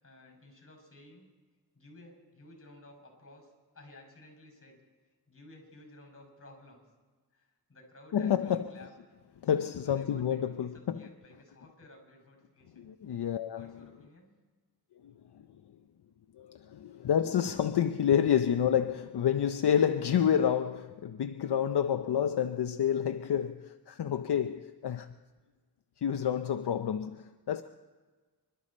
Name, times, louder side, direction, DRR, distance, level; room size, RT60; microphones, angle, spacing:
voice 1, 0.0-1.3 1.7-4.8 5.3-6.8 7.3-8.9 9.8-12.9 13.5-14.4, left 1 dB, 35° left, 6.1 m, -55 dB
voice 2, 8.1-8.7 9.4-11.1 12.8-13.7 15.0-15.1 16.4-25.1 26.0-27.6, left 9 dB, 75° left, 0.6 m, -29 dB
26.5 x 12.5 x 4.3 m
wide cardioid pair, 105°, 40 cm